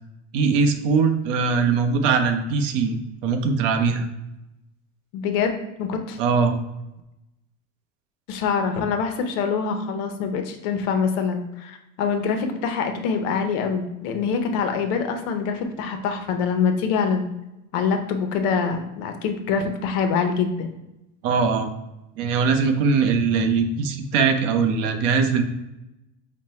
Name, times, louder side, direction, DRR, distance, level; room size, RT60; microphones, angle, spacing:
voice 1, 0.3-3.0 3.2-4.1 6.2-6.6 21.2-21.7 22.2-25.4, right 5 dB, 85° right, 7 dB, 0.8 m, -21 dB
voice 2, 5.1-5.5 5.8-6.2 8.3-17.3 17.7-20.7, left 5 dB, 55° left, 6 dB, 0.7 m, -25 dB
5.2 x 2.1 x 4.2 m, 0.92 s
cardioid pair, 170°, 37 cm